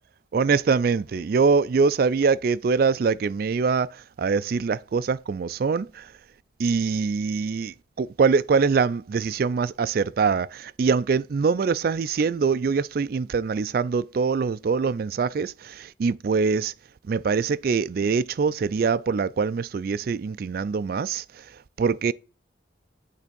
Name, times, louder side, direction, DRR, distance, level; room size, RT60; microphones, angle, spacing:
voice 1, 0.3-6.1 6.6-16.7 17.1-21.2 21.8-22.1, right 5 dB, 50° right, 0.3 m, -23 dB
8.4 x 3.5 x 6.7 m
head